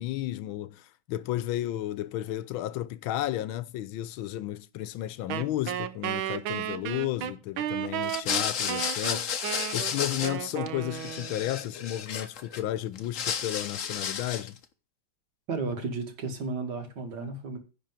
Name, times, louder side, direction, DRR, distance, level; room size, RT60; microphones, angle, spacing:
voice 1, 0.0-9.3 9.7-14.6, left 14 dB, 85° left, 1.5 m, -33 dB
Wind instrument woodwind instrument, 5.3-11.6, right 11 dB, 85° right, 1.5 m, -34 dB
sound 1, 8.0-10.7 10.9-12.6 12.9-14.6, left 7 dB, 50° left, 1.1 m, -32 dB
voice 2, 15.5-17.6, right 3 dB, 60° right, 2.1 m, -33 dB
10.5 x 4.3 x 7.3 m
omnidirectional pair, 2.2 m